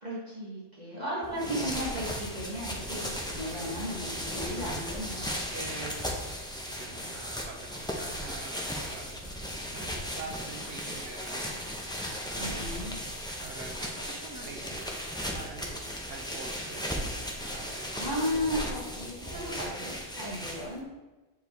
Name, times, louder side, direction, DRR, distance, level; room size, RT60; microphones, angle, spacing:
voice 1, 0.0-5.2 12.4-13.0 18.0-20.8, equal, 35° right, -7 dB, 1.5 m, -35 dB
voice 2, 0.9-1.7 3.5-3.7 4.3-4.8 5.1-12.7 13.4-17.0 17.3-18.0 19.2-19.7, right 3 dB, 55° right, 2 dB, 1.2 m, -45 dB
sound 1, 1.2-20.8, equal, 5° left, 0.7 m, -36 dB
7.8 x 4.8 x 3.5 m, 1.2 s
omnidirectional pair, 1.3 m